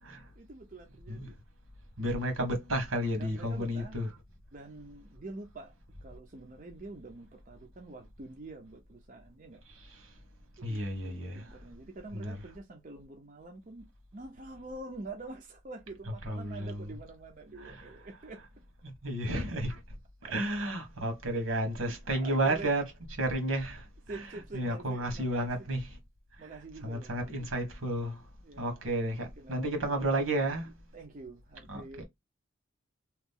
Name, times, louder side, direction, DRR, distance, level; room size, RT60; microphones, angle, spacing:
voice 1, 0.4-1.3 3.2-4.0 4.5-5.7 6.0-9.6 9.9-10.2 10.6-13.9 14.1-18.4 20.2-20.3 21.8-22.7 24.1-25.7 26.4-27.7 28.4-28.8 29.4-30.6 30.9-32.0, right 2 dB, 40° right, 0.5 m, -46 dB
voice 2, 2.0-4.1 9.8-10.1 10.6-11.6 12.1-12.3 16.2-16.9 17.6-17.8 19.0-19.8 20.2-22.8 23.2-23.9 24.1-24.2 24.5-25.9 26.8-28.3 28.6-30.7 31.7-32.0, right 1 dB, 85° right, 1.4 m, -32 dB
2.9 x 2.4 x 3.6 m
head